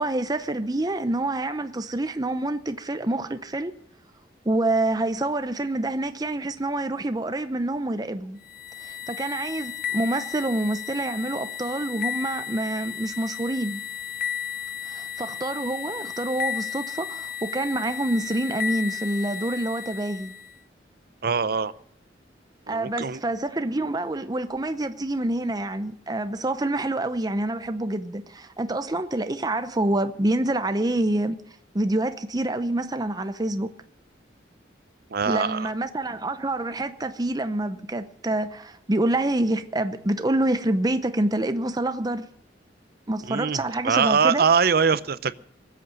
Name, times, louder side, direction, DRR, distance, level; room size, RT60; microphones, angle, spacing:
voice 1, 0.0-3.7 4.4-8.4 8.8-13.8 14.8-20.3 22.7-31.4 31.7-33.7 35.3-42.3 43.1-44.4, right 1 dB, 20° right, 0.7 m, -27 dB
sound 1, 8.4-20.6, left 8 dB, 55° left, 0.6 m, -34 dB
voice 2, 21.2-21.7 22.7-23.2 35.1-35.7 43.3-45.3, right 6 dB, 60° right, 0.6 m, -23 dB
19.5 x 8.4 x 7.7 m
head